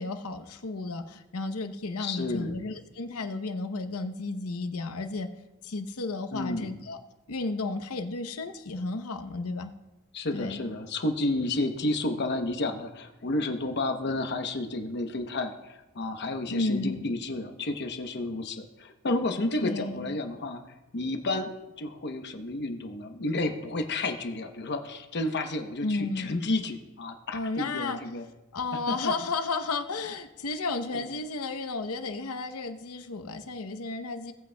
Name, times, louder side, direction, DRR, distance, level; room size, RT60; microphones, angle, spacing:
voice 1, 0.0-5.3 5.6-7.0 7.3-9.7 10.3-10.6 16.5-17.1 19.6-20.1 25.8-26.4 27.3-28.0 28.5-34.3, left 3 dB, 80° left, 8 dB, 0.8 m, -33 dB
voice 2, 2.0-2.6 6.3-6.8 10.1-21.5 21.8-28.2 28.9-29.1 30.9-31.0, left 2 dB, 50° left, 6 dB, 0.9 m, -31 dB
18.0 x 8.1 x 2.2 m, 1.0 s
head